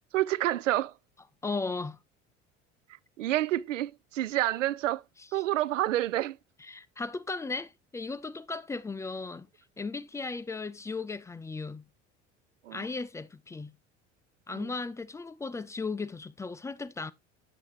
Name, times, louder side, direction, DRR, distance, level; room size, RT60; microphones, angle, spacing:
voice 1, 0.1-0.9 3.2-5.0 5.3-6.4 12.6-12.8 14.5-14.7, right 14 dB, 75° right, 0.5 m, -28 dB
voice 2, 1.4-2.0 6.6-9.5 9.8-11.9 12.7-13.7 14.5-17.1, left 3 dB, 10° left, 0.4 m, -36 dB
8.1 x 8.0 x 3.0 m
figure-of-eight pair, 65°, 38 cm